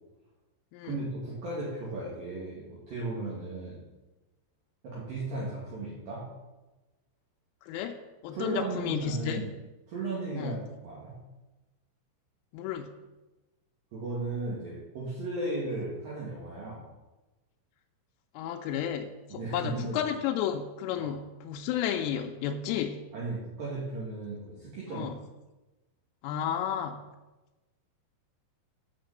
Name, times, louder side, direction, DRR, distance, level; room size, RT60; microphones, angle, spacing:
voice 1, 0.8-3.9 4.8-6.3 8.3-9.5 9.9-11.1 13.9-16.9 19.3-20.0 21.0-21.2 23.1-25.1, right 2 dB, 55° right, -6 dB, 2.9 m, -35 dB
voice 2, 7.7-8.0 8.2-9.4 10.4-10.6 12.5-12.9 18.4-23.0 24.9-25.2 26.2-27.0, left 9 dB, 85° left, 2 dB, 3.2 m, -32 dB
9.4 x 5.0 x 7.8 m, 1.1 s
omnidirectional pair, 5.8 m